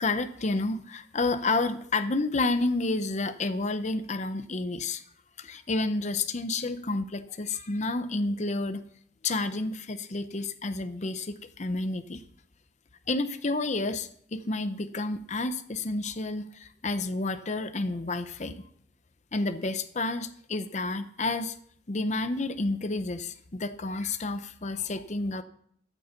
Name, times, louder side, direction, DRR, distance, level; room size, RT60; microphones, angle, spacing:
voice 1, 0.0-5.0 5.4-8.8 9.2-12.2 13.1-18.6 19.3-21.6 21.9-25.4, left 2 dB, 40° left, 9 dB, 0.7 m, -30 dB
13.0 x 6.6 x 7.0 m, 0.64 s
head